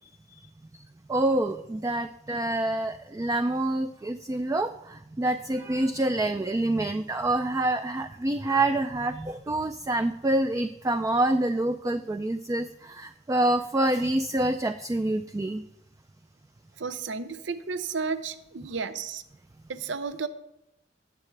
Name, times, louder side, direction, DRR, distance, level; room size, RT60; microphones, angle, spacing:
voice 1, 1.1-15.6, right 1 dB, 15° right, 8 dB, 0.3 m, -27 dB
voice 2, 16.8-19.2 19.7-20.3, right 5 dB, 75° right, 12 dB, 0.7 m, -32 dB
19.0 x 7.3 x 3.3 m, 0.83 s
head